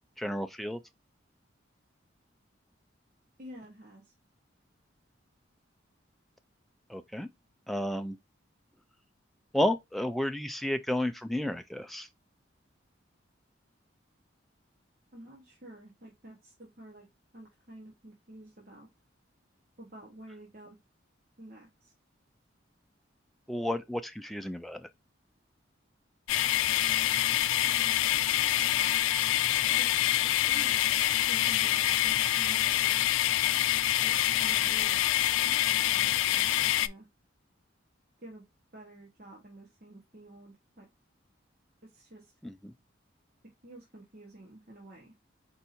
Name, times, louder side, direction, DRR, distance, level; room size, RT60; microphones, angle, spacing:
voice 1, 0.2-0.8 6.9-7.3 7.7-8.2 9.5-12.1 23.5-24.9 42.4-42.7, left 1 dB, ahead, 0.3 m, -32 dB
voice 2, 3.4-4.1 15.1-17.1 17.3-18.9 19.8-20.8 21.4-21.9 27.6-28.0 29.8-30.1 30.4-30.8 31.3-33.1 34.0-35.0 35.4-37.1 38.2-38.4 38.7-40.9 41.8-42.3 43.6-45.1, right 1 dB, 45° right, 1.2 m, -50 dB
sound 1, 26.3-36.9, left 13 dB, 85° left, 0.3 m, -26 dB
4.6 x 2.7 x 4.2 m
head